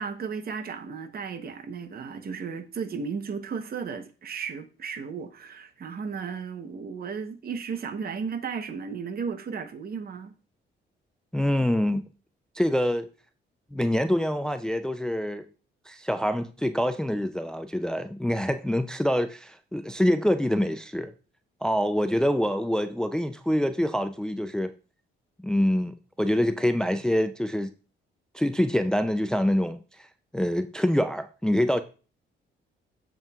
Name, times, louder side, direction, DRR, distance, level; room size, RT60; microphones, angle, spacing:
voice 1, 0.0-10.3, right 6 dB, 50° right, 0.9 m, -34 dB
voice 2, 11.3-12.1 12.6-13.1 13.7-15.4 15.9-21.1 21.6-24.7 25.4-27.7 28.3-30.1 30.3-31.8, equal, 5° left, 0.4 m, -25 dB
7.4 x 7.0 x 2.4 m
cardioid pair, 90°, 20 cm